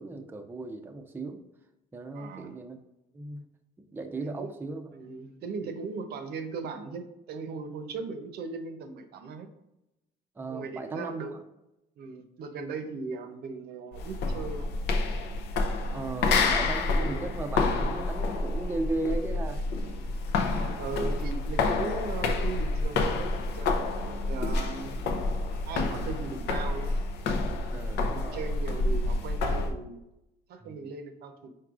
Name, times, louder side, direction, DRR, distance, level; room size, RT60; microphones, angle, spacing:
voice 1, 0.0-1.4 1.9-2.8 3.1-3.5 3.8-4.8 5.6-5.7 10.4-11.4 15.9-19.6 24.3-24.6 27.7-28.5 30.6-30.9, right 2 dB, 10° right, 4 dB, 0.5 m, -36 dB
voice 2, 2.1-2.6 4.4-4.5 4.9-9.5 10.5-11.4 12.0-14.7 16.2-16.5 16.9-17.3 20.5-23.7 24.0-25.0 25.6-27.0 28.1-30.0 30.5-31.5, right 4 dB, 70° right, 7 dB, 0.6 m, -38 dB
sound 1, 13.9-29.7, left 3 dB, 80° left, 0.6 m, -29 dB
4.6 x 4.6 x 2.4 m, 0.91 s
cardioid pair, 110°, 17 cm